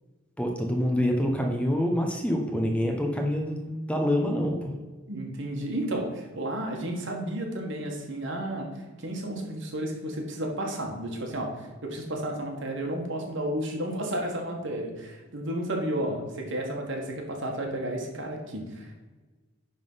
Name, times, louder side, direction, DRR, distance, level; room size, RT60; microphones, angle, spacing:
voice 1, 0.4-4.7, equal, 5° left, 2 dB, 0.9 m, -26 dB
voice 2, 5.1-19.1, right 1 dB, 60° right, 1 dB, 1.7 m, -32 dB
10.5 x 3.8 x 5.6 m, 1.3 s
head